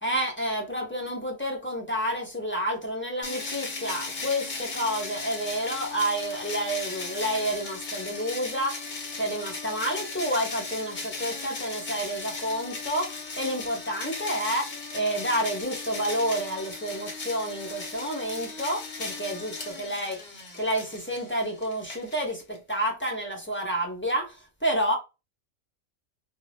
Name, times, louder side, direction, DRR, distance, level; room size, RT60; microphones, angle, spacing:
voice 1, 0.0-24.9, equal, 10° left, 0.6 m, -30 dB
sound 1, 3.2-22.6, left 3 dB, 45° left, 0.9 m, -37 dB
2.6 x 2.3 x 3.2 m
omnidirectional pair, 1.3 m